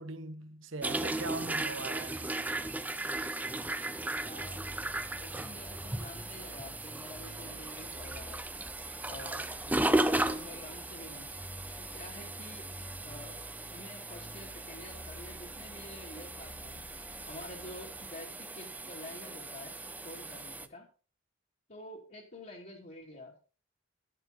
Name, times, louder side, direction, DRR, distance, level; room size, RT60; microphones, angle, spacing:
voice 1, 0.0-2.6, right 2 dB, 75° right, 1.1 m, -41 dB
sound 1, 0.8-20.7, right 2 dB, 10° right, 0.5 m, -36 dB
sound 2, 2.6-10.5, right 2 dB, 90° right, 3.0 m, -59 dB
voice 2, 4.2-4.6 5.2-8.4 9.1-11.3 11.9-12.6 13.0-16.8 17.3-19.7 20.0-20.8 21.7-23.3, left 1 dB, 45° left, 2.8 m, -48 dB
sound 3, 4.3-18.5, left 1 dB, 15° left, 0.8 m, -51 dB
11.0 x 10.0 x 4.1 m
head